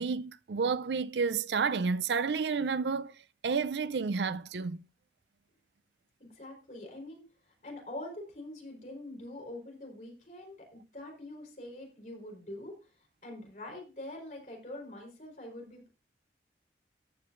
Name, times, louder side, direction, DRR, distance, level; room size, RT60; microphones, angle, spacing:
voice 1, 0.0-3.1 3.4-4.8, right 5 dB, 80° right, 0.5 m, -30 dB
voice 2, 6.2-15.9, left 1 dB, 45° left, 4.2 m, -45 dB
14.0 x 9.6 x 2.6 m
head